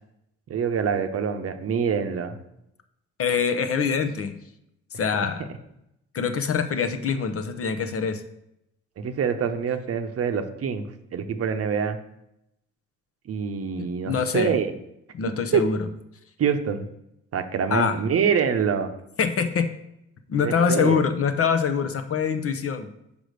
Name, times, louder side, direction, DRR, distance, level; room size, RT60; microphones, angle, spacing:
voice 1, 0.5-2.4 9.0-10.9 11.1-12.0 13.3-14.7 15.5-15.6 16.4-16.9 17.3-18.9 20.4-21.0, right 7 dB, 50° right, 8 dB, 0.8 m, -25 dB
voice 2, 3.2-4.4 5.0-5.5 6.1-8.2 13.8-14.5 15.1-15.8 17.7-18.0 19.2-19.7 20.3-22.9, left 6 dB, 50° left, 8 dB, 0.8 m, -24 dB
5.2 x 5.0 x 6.4 m, 0.81 s
cardioid pair, 90°, 30 cm